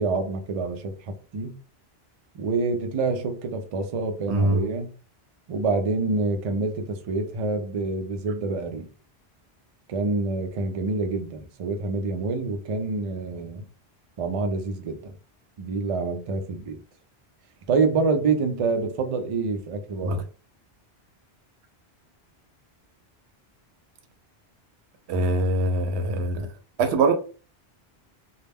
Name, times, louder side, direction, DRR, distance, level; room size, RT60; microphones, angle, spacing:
voice 1, 0.0-1.5 2.3-4.9 5.5-8.9 9.9-13.6 14.2-15.1 15.6-16.8 17.7-20.2, right 3 dB, 55° right, 0.4 m, -27 dB
voice 2, 4.3-4.6 20.0-20.2 25.1-26.5 26.8-27.1, right 2 dB, 90° right, 0.9 m, -23 dB
2.2 x 2.1 x 3.3 m
omnidirectional pair, 1.1 m